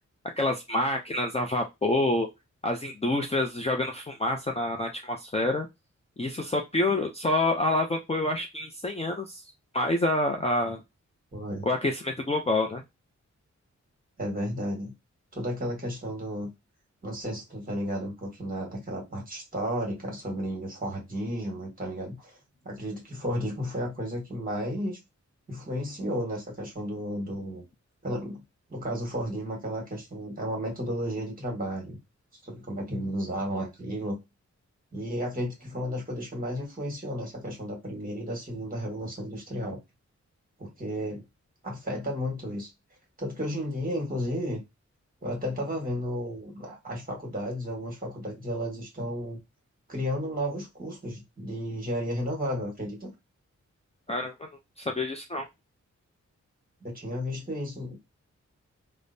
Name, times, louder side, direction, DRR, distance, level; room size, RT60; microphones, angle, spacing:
voice 1, 0.4-2.3 2.6-5.7 6.2-9.4 9.7-10.8 11.6-12.8 54.1-54.5 54.8-55.5, left 2 dB, 20° left, 0.4 m, -27 dB
voice 2, 11.3-11.7 14.2-14.9 15.3-16.5 17.0-22.3 22.6-25.0 25.5-27.6 28.0-28.4 28.7-32.0 32.4-34.2 34.9-39.8 40.6-41.2 41.6-42.7 43.2-44.6 45.2-49.4 49.9-53.1 56.8-58.0, equal, 30° right, 1.5 m, -33 dB
5.1 x 2.1 x 2.6 m
wide cardioid pair, 145°, 29 cm